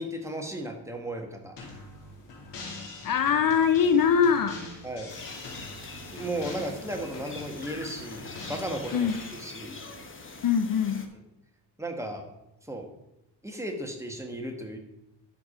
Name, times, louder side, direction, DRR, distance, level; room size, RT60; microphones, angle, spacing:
voice 1, 0.0-1.7 4.8-5.1 6.1-9.8 11.8-12.2 12.6-12.9 13.4-14.8, right 1 dB, 5° right, 2 dB, 1.4 m, -35 dB
sound 1, 1.6-9.3, left 3 dB, 80° left, 3.0 m, -43 dB
voice 2, 3.0-4.6 8.9-9.2 10.4-11.1, left 7 dB, 50° left, 9 dB, 0.7 m, -22 dB
sound 2, 5.1-11.1, left 3 dB, 30° left, 1.1 m, -44 dB
12.0 x 4.8 x 5.0 m, 0.88 s
cardioid pair, 125°, 42 cm